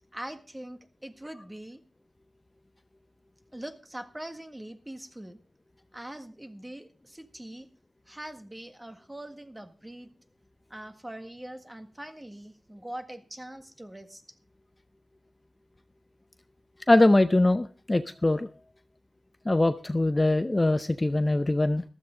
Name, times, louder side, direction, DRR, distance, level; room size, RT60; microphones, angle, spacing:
voice 1, 0.1-1.8 3.5-5.4 5.9-7.7 8.1-10.1 10.7-14.2, right 1 dB, 15° right, 8 dB, 1.6 m, -42 dB
voice 2, 16.9-18.5 19.5-21.8, left 2 dB, 25° left, 10 dB, 0.6 m, -22 dB
14.5 x 13.0 x 3.8 m, 0.35 s
wide cardioid pair, 80°, 0 cm